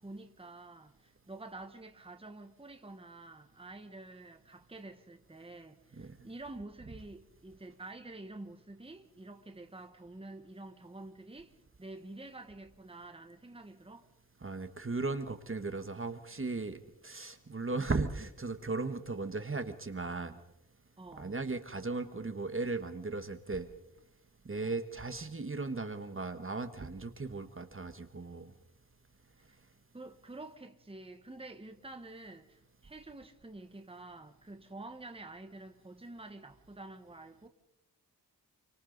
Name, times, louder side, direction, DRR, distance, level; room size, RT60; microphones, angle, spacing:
voice 1, 0.0-11.5 11.8-14.1 21.0-21.3 24.6-24.8 29.9-37.5, right 2 dB, 15° right, 1.3 m, -48 dB
voice 2, 14.4-20.4 21.2-23.7 24.4-28.5, right 3 dB, 35° right, 1.3 m, -37 dB
29.0 x 24.5 x 4.0 m
wide cardioid pair, 115°, 38 cm